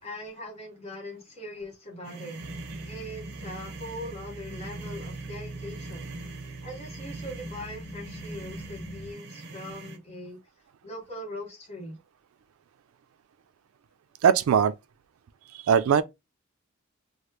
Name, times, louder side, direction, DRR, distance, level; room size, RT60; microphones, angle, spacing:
voice 1, 0.0-2.4 2.8-6.1 6.6-10.4 10.8-12.0, left 1 dB, 30° left, 1.2 m, -41 dB
sound 1, 2.0-10.0, right 2 dB, 50° right, 0.7 m, -42 dB
sound 2, 2.4-9.1, right 1 dB, 55° left, 0.8 m, -43 dB
voice 2, 14.2-14.7 15.7-16.0, right 7 dB, 85° right, 0.3 m, -20 dB
3.0 x 2.3 x 3.2 m
head